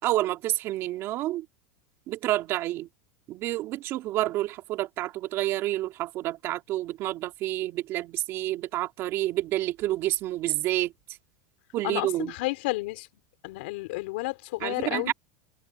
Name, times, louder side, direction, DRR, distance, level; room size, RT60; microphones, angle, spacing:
voice 1, 0.0-1.4 2.1-2.9 3.3-10.9 11.7-12.3 14.6-15.1, right 15 dB, 45° right, 2.4 m, -29 dB
voice 2, 11.8-13.1 13.4-15.1, left 22 dB, 70° left, 4.3 m, -31 dB
supercardioid pair, 130°, 6 cm